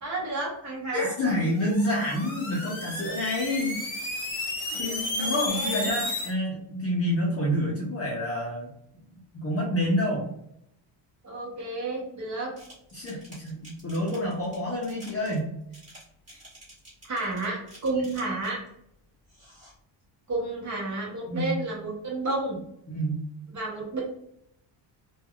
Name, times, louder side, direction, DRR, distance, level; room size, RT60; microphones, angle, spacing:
voice 1, 0.0-1.1 4.7-5.9 11.2-12.6 17.1-18.6 20.3-22.6 23.5-24.0, right 2 dB, 35° right, -2 dB, 0.8 m, -31 dB
voice 2, 0.9-3.8 4.7-8.7 9.3-10.3 12.9-15.5 16.3-16.4 21.3-21.5 22.9-23.3, left 1 dB, 30° left, -3 dB, 0.5 m, -28 dB
sound 1, 1.5-6.3, left 2 dB, 50° left, 0.9 m, -33 dB
sound 2, 12.6-18.7 19.2-19.7, right 1 dB, 15° right, 1.5 m, -50 dB
3.2 x 2.3 x 2.2 m, 0.74 s
cardioid pair, 170°, 48 cm